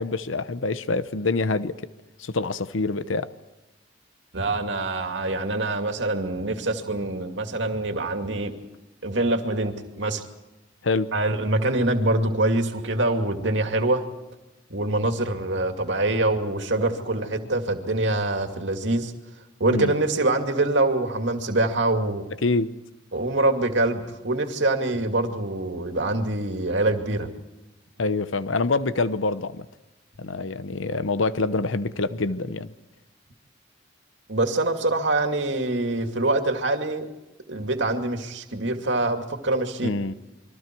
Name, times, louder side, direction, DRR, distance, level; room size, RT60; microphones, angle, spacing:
voice 1, 0.0-1.8 2.2-3.3 10.8-11.1 19.7-19.9 22.4-22.7 28.0-29.7 30.2-32.7 39.8-40.1, left 3 dB, 90° left, 0.9 m, -26 dB
voice 2, 4.3-8.5 9.0-10.2 11.1-14.0 14.7-19.1 19.6-22.2 23.1-27.3 34.3-37.1 37.5-39.9, right 2 dB, 65° right, 2.4 m, -24 dB
28.5 x 23.0 x 4.6 m
head